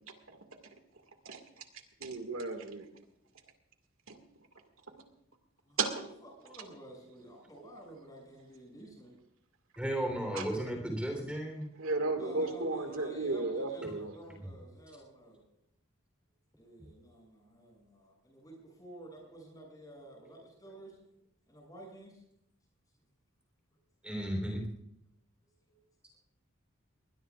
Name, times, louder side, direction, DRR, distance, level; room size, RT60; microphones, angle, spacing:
voice 1, 1.2-1.6 2.0-2.9 4.1-4.2 5.8-5.9 10.3-10.5 11.8-14.1, right 3 dB, 80° right, 5 dB, 2.0 m, -34 dB
voice 2, 5.6-9.2 12.2-15.4 16.6-21.0 21.5-22.2 25.7-25.8, right 1 dB, 15° left, -1 dB, 7.0 m, -51 dB
voice 3, 9.8-11.7 24.0-24.6, right 1 dB, 5° right, 2 dB, 3.6 m, -34 dB
22.0 x 20.5 x 2.5 m, 0.77 s
head